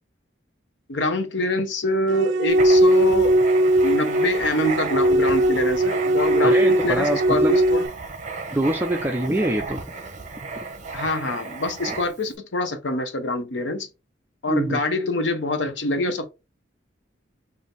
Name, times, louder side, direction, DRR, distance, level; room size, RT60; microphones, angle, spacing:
voice 1, 0.9-3.4 3.8-7.9 10.9-13.9 14.4-16.3, left 1 dB, 75° left, 0.8 m, -25 dB
sound 1, 2.1-7.9, right 1 dB, 85° right, 0.3 m, -19 dB
Writing, 2.5-12.3, right 4 dB, 40° right, 0.7 m, -34 dB
voice 2, 6.4-7.6 8.5-9.8 11.9-12.0 14.5-14.8, right 1 dB, 10° right, 0.4 m, -24 dB
3.6 x 2.7 x 3.9 m
head